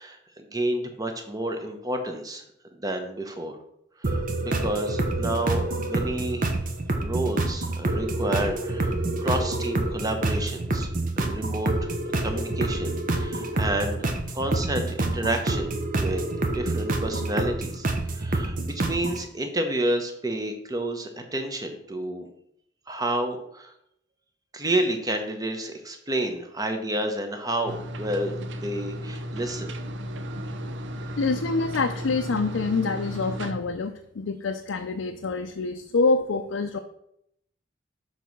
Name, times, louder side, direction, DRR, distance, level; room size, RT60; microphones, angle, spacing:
voice 1, 0.0-2.4 2.8-3.6 4.0-6.5 6.9-10.9 11.2-14.0 14.3-17.8 18.1-22.3 22.9-23.7 24.5-28.4 28.6-29.7, right 1 dB, 20° right, 5 dB, 1.0 m, -30 dB
sound 1, 4.0-19.2, right 2 dB, 45° right, 0.9 m, -27 dB
sound 2, 27.7-33.5, equal, 70° right, 0.7 m, -34 dB
voice 2, 31.2-36.8, left 3 dB, 85° left, 4 dB, 0.5 m, -26 dB
7.0 x 4.1 x 6.0 m, 0.74 s
head